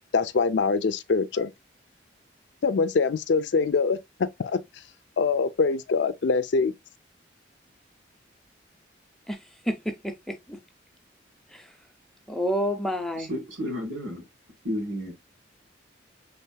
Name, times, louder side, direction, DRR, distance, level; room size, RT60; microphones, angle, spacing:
voice 1, 0.1-1.5 2.6-4.6 5.2-6.7, left 4 dB, 65° left, 0.4 m, -24 dB
voice 2, 9.7-10.6 11.5-11.7 12.3-13.3, equal, ahead, 0.6 m, -29 dB
voice 3, 13.2-14.2 14.6-15.1, equal, 80° right, 1.8 m, -32 dB
5.6 x 3.5 x 2.2 m
head